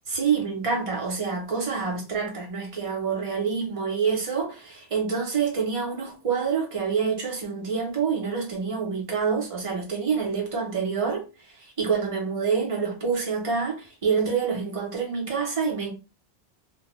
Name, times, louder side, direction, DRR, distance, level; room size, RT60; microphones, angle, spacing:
voice 1, 0.1-15.9, right 5 dB, 35° right, 0.8 m, -27 dB
2.2 x 2.2 x 3.0 m
omnidirectional pair, 1.1 m